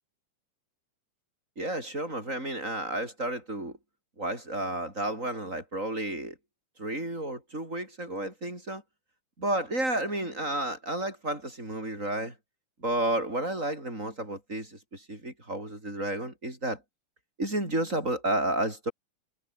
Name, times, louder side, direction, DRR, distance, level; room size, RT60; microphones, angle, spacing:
voice 1, 1.6-3.8 4.2-6.3 6.8-8.8 9.4-12.3 12.8-16.8 17.4-18.9, right 1 dB, 25° right, 8.1 m, -31 dB
omnidirectional pair, 3.4 m